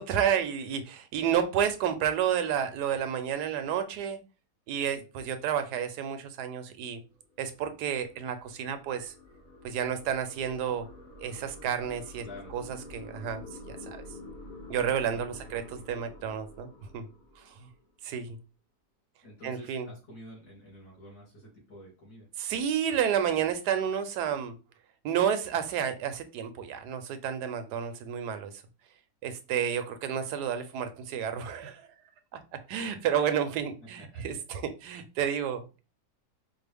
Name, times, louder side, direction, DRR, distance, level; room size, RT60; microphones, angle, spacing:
voice 1, 0.0-4.2 4.7-7.0 7.4-9.1 9.6-10.9 11.2-12.3 12.5-12.6 12.9-14.0 14.7-17.0 17.4-17.7 18.0-18.4 19.4-19.9 22.4-24.5 25.0-28.5 29.2-31.9 32.3-32.4 32.7-35.8, right 8 dB, 80° right, 9 dB, 1.1 m, -30 dB
sound 1, 7.2-17.8, left 1 dB, 40° left, 0.8 m, -48 dB
voice 2, 12.2-12.8 15.1-15.9 19.2-22.3 33.8-34.4, equal, 70° left, -4 dB, 2.8 m, -49 dB
5.1 x 2.1 x 3.4 m, 0.31 s
omnidirectional pair, 1.7 m